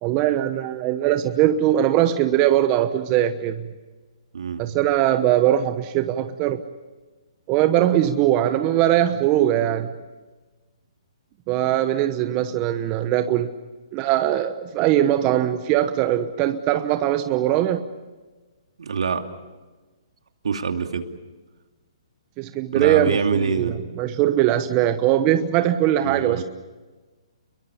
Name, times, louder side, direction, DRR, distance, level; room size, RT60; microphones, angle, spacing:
voice 1, 0.0-3.7 4.6-6.6 7.5-9.9 11.5-13.5 13.9-17.9 22.4-26.4, right 12 dB, 30° right, 9 dB, 1.1 m, -21 dB
voice 2, 18.8-19.2 20.4-21.1 22.7-23.8 26.0-26.4, right 5 dB, 75° right, 6 dB, 2.6 m, -25 dB
29.5 x 22.5 x 7.0 m, 1.3 s
hypercardioid pair, 140°, 3 cm